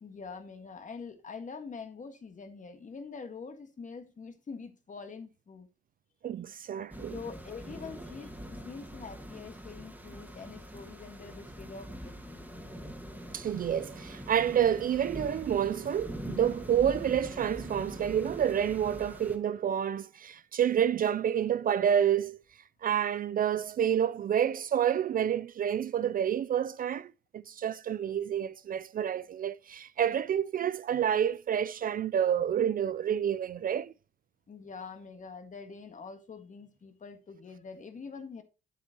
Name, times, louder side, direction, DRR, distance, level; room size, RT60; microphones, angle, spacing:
voice 1, 0.0-5.7 7.1-12.5 34.5-38.4, left 5 dB, 40° left, 1.7 m, -45 dB
voice 2, 6.2-7.2 13.3-22.4 22.8-33.9, right 9 dB, 45° right, 0.4 m, -29 dB
sound 1, 6.9-19.4, equal, 10° right, 2.2 m, -44 dB
8.8 x 8.2 x 3.0 m
cardioid pair, 90°, 20 cm